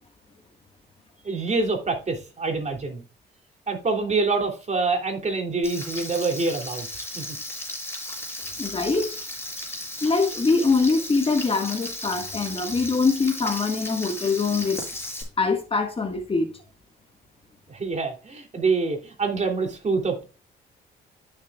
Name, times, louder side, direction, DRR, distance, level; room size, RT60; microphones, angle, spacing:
voice 1, 1.2-3.0 3.7-6.9 7.1-7.4 17.7-20.2, right 4 dB, 35° right, 3.0 m, -26 dB
Frying (food), 5.6-15.2, left 1 dB, 10° left, 5.6 m, -35 dB
voice 2, 8.6-9.2 10.0-14.8 15.4-16.5, left 4 dB, 25° left, 1.7 m, -23 dB
14.0 x 6.9 x 2.4 m
cardioid pair, 90°, 20 cm